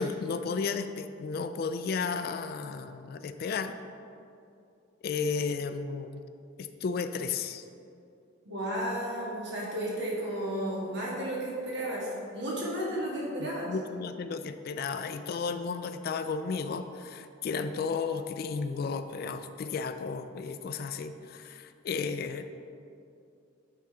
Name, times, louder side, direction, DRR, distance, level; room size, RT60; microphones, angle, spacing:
voice 1, 0.0-3.7 5.0-6.2 6.6-7.6 13.4-22.5, left 5 dB, 50° left, 10 dB, 0.3 m, -33 dB
voice 2, 8.4-13.7, right 1 dB, 60° right, -5 dB, 1.7 m, -33 dB
8.4 x 3.8 x 4.8 m, 2.6 s
head